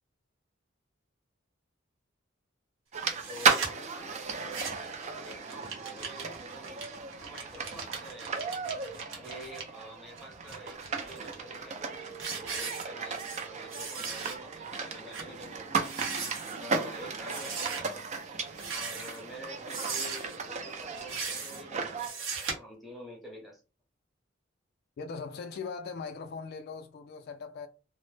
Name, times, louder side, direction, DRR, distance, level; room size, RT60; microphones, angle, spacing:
sound 1, 2.9-22.1, right 5 dB, 35° right, 0.4 m, -35 dB
sound 2, 3.2-3.7 4.3-4.9 5.2-9.6 10.2-11.3 11.8-11.9 12.2-13.4 13.7-14.3 14.7-14.8 15.1-15.3 15.7-16.6 17.3-17.8 18.5-19.2 19.7-20.4 20.9-21.6 22.0-22.5, right 5 dB, 70° right, 0.8 m, -38 dB
voice 1, 3.3-6.8 7.2-8.8 9.1-12.1 12.4-15.9 16.6-17.9 18.2-18.4 18.7-23.6, equal, ahead, 0.7 m, -48 dB
voice 2, 25.0-27.7, left 5 dB, 55° left, 0.3 m, -40 dB
2.0 x 2.0 x 3.1 m
head